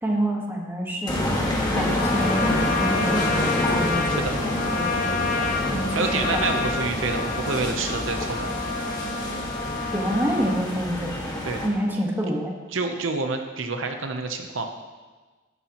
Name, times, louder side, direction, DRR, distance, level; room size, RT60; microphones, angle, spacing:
voice 1, 0.0-1.2 1.7-6.5 9.9-11.1 11.6-12.5, equal, 10° right, -1 dB, 1.5 m, -27 dB
sound 1, 1.1-11.7, left 1 dB, 20° left, 1.8 m, -27 dB
Trumpet, 1.9-10.6, left 4 dB, 45° left, 0.9 m, -29 dB
voice 2, 5.9-8.5 11.4-11.6 12.7-14.7, right 4 dB, 70° right, 5 dB, 0.9 m, -28 dB
13.0 x 11.0 x 3.0 m, 1.3 s
head